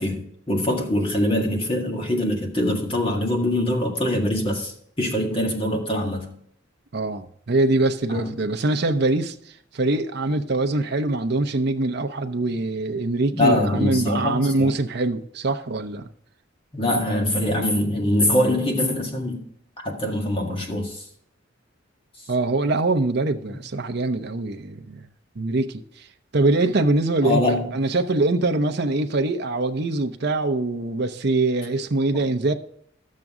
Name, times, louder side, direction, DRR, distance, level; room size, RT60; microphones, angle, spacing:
voice 1, 0.0-6.3 8.1-8.5 13.3-14.7 16.7-19.5 19.8-21.0 27.2-27.7 32.1-32.2, left 1 dB, 30° left, 1.8 m, -23 dB
voice 2, 6.9-9.3 9.7-16.1 22.3-25.0 25.4-25.8 26.3-27.4 27.7-32.5, right 2 dB, 55° right, 0.7 m, -23 dB
12.0 x 7.6 x 3.7 m
head